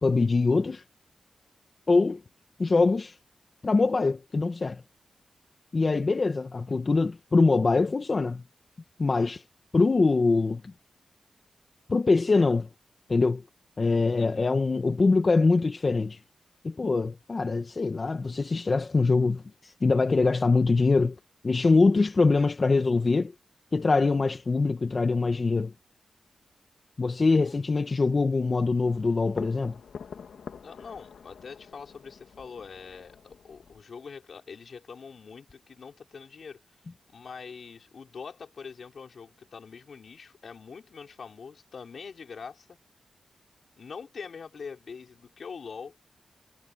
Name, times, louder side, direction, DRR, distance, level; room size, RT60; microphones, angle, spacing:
voice 1, 0.0-0.8 1.9-2.2 2.6-3.2 3.6-4.8 5.7-8.4 9.0-9.4 9.7-10.7 11.9-12.7 13.1-13.4 13.8-16.2 16.6-21.1 21.4-23.3 23.7-25.7 27.0-29.8, left 3 dB, 40° left, 1.3 m, -23 dB
voice 2, 14.2-14.5 27.4-27.6 30.6-36.6 37.1-42.8 43.8-46.0, left 5 dB, 65° left, 5.3 m, -44 dB
sound 1, 28.8-33.8, left 6 dB, 90° left, 2.7 m, -46 dB
wide cardioid pair, 95°, 0 cm